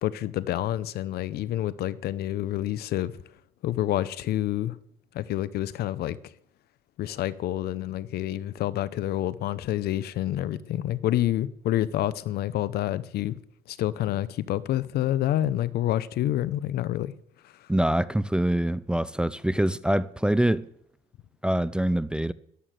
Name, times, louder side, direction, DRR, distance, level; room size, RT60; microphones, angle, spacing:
voice 1, 0.0-3.1 3.6-4.8 5.1-6.3 7.0-13.4 13.7-17.1 17.6-17.7, left 13 dB, 70° left, 0.8 m, -28 dB
voice 2, 17.7-20.7 21.4-22.3, right 1 dB, 5° right, 0.4 m, -24 dB
11.0 x 11.0 x 7.6 m
cardioid pair, 110°, 17 cm